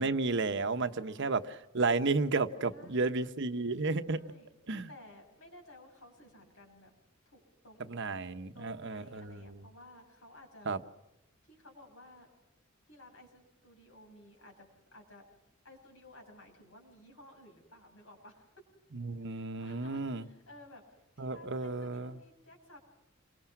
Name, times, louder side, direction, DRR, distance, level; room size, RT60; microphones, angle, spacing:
voice 1, 0.0-4.2 4.7-4.9 7.9-9.6 10.7-10.8 18.9-20.2 21.2-22.2, right 3 dB, 60° right, 1.0 m, -32 dB
voice 2, 0.8-1.5 2.7-3.2 4.1-4.5 4.9-6.9 7.2-8.1 8.5-10.7 11.4-12.3 12.9-15.3 15.6-18.5 19.2-22.8, left 1 dB, 90° left, 6.7 m, -56 dB
28.0 x 23.5 x 6.0 m
head